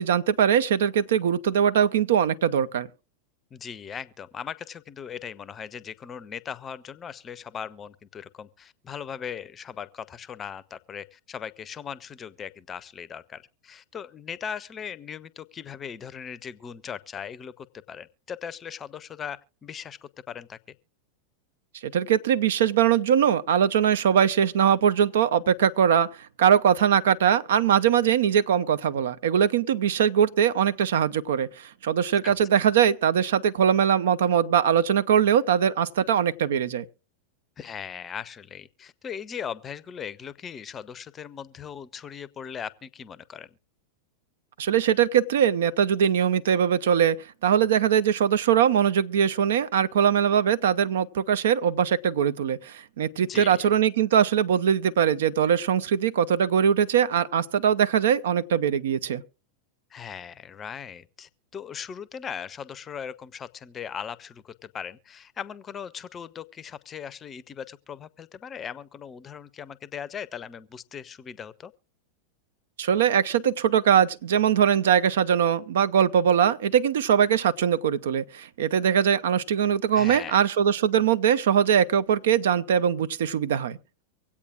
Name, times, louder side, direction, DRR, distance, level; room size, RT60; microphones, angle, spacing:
voice 1, 0.0-2.9 21.8-26.1 26.4-36.9 44.6-47.2 47.4-59.2 72.8-83.8, right 8 dB, 60° right, 0.5 m, -22 dB
voice 2, 3.5-20.6 32.2-32.4 37.6-43.5 53.2-53.7 59.9-71.7 79.9-80.5, left 7 dB, 25° left, 0.6 m, -39 dB
24.5 x 8.5 x 2.4 m
figure-of-eight pair, 90°, 0 cm